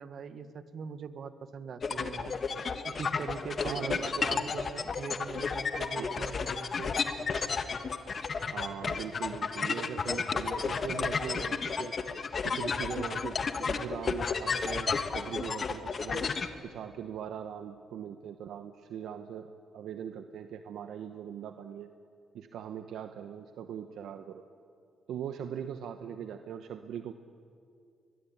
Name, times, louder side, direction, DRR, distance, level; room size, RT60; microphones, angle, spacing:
voice 1, 0.0-2.4 2.8-7.0, right 6 dB, 60° right, 11 dB, 1.5 m, -42 dB
sound 1, 1.8-16.5, left 5 dB, 45° left, 1.5 m, -32 dB
voice 2, 3.6-4.5 6.0-6.1 8.5-12.0 12.4-16.3 16.6-21.9 22.3-24.4 25.1-27.1, right 8 dB, 75° right, 8 dB, 1.0 m, -40 dB
22.5 x 22.5 x 8.7 m, 2.4 s
cardioid pair, 90°, 0 cm